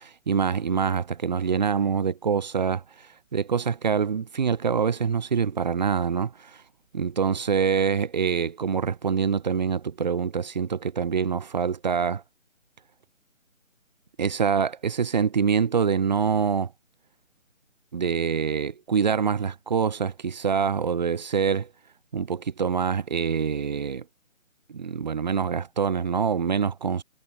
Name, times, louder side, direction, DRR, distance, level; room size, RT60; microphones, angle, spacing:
voice 1, 0.0-6.6 6.9-12.2 14.2-16.7 17.9-21.7 22.1-24.0 24.7-27.0, right 6 dB, 30° right, 5.5 m, -25 dB
hypercardioid pair, 175°, 40 cm